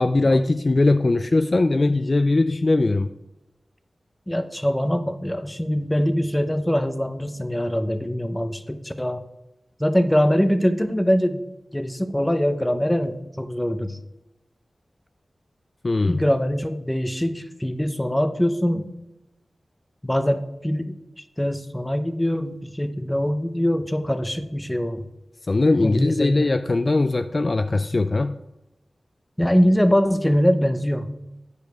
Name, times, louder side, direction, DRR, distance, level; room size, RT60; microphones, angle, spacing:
voice 1, 0.0-3.1 15.8-16.2 25.5-28.4, left 2 dB, 45° left, 0.3 m, -20 dB
voice 2, 4.3-9.2 9.8-14.0 16.1-18.9 20.0-21.0 21.4-25.0 25.8-26.5 29.4-31.1, equal, 10° left, 0.7 m, -23 dB
9.2 x 5.0 x 4.6 m
wide cardioid pair, 70°, 0 cm